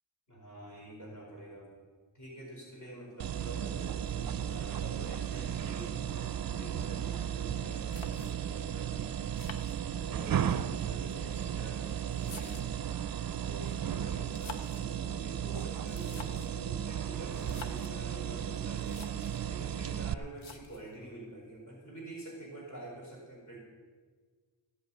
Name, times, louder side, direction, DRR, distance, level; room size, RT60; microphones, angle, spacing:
voice 1, 0.3-1.7 2.1-9.1 10.0-13.1 13.5-19.1 19.5-23.6, right 1 dB, 45° left, -3 dB, 4.7 m, -47 dB
sound 1, 3.2-20.1, right 9 dB, 50° right, 0.5 m, -35 dB
sound 2, 7.9-8.6 9.3-10.3 11.2-12.9 14.2-14.9 15.8-16.6 17.3-18.0 18.5-18.6 18.8-19.4 20.4-21.0, left 5 dB, 85° left, 1.1 m, -49 dB
15.0 x 7.9 x 8.5 m, 1.5 s
wide cardioid pair, 135°, 46 cm